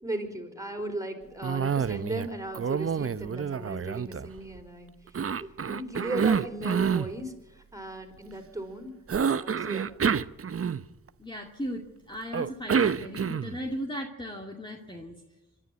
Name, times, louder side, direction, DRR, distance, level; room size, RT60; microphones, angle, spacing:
voice 1, 0.0-8.9 9.4-9.9, right 1 dB, 10° right, 4 dB, 4.6 m, -37 dB
Cough, 1.4-2.3 2.5-4.6 5.1-7.1 9.1-11.1 12.3-13.6, right 7 dB, 40° right, 0.7 m, -28 dB
voice 2, 11.2-15.1, equal, 15° left, 1 dB, 2.4 m, -37 dB
25.0 x 11.0 x 9.4 m, 1.0 s
supercardioid pair, 45°, 37 cm